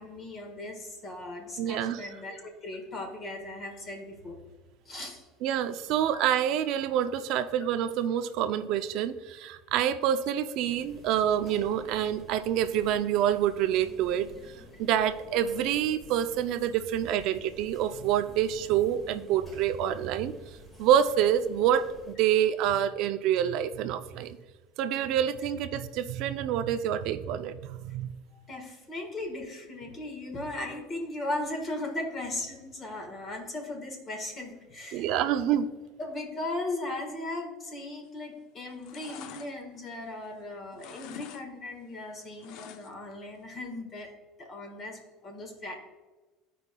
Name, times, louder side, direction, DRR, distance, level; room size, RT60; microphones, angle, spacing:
voice 1, 0.0-4.4 4.8-5.3 28.5-35.2 36.0-44.1 44.4-45.7, left 2 dB, 30° left, 3 dB, 1.4 m, -37 dB
voice 2, 1.6-2.0 5.4-14.3 14.8-20.3 20.8-24.4 24.8-28.1 34.9-35.7, right 10 dB, 60° right, 10 dB, 0.4 m, -27 dB
sound 1, 10.7-22.1, equal, 5° left, 1.2 m, -51 dB
sound 2, 38.0-38.3 38.6-40.4 40.7-41.4 41.7-43.1 43.5-43.6, left 8 dB, 60° left, 0.4 m, -46 dB
15.0 x 5.0 x 2.2 m, 1.3 s
cardioid pair, 150°, 0 cm